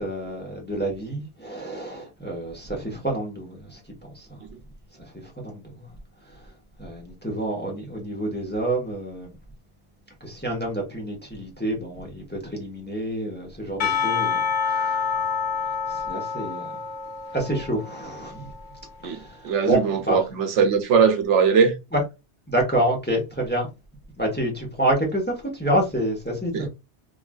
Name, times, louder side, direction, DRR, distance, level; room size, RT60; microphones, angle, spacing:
voice 1, 0.0-3.8 4.1-4.4 5.0-5.9 6.8-9.4 10.2-15.4 15.9-16.7 17.3-18.5 19.0-20.2 21.9-22.0 22.5-23.7 24.2-26.7, right 1 dB, 10° left, 0.7 m, -28 dB
Percussion / Church bell, 13.8-18.9, left 6 dB, 50° left, 0.7 m, -28 dB
voice 2, 19.0-21.8 26.5-26.7, right 6 dB, 85° right, 0.9 m, -20 dB
3.7 x 2.4 x 2.2 m
omnidirectional pair, 1.2 m